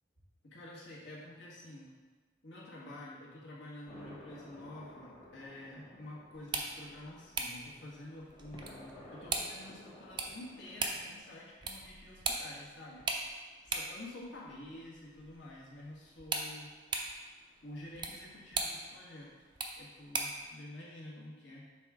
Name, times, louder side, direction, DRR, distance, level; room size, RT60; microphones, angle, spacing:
voice 1, 0.4-1.9 2.4-13.1 13.6-16.7 17.6-19.3 19.8-21.7, left 1 dB, 70° left, -5 dB, 1.5 m, -49 dB
sound 1, 3.9-11.2, left 1 dB, 35° left, 1.4 m, -54 dB
sound 2, 6.3-20.5, right 3 dB, 25° right, 0.5 m, -41 dB
5.9 x 3.6 x 4.8 m, 1.4 s
head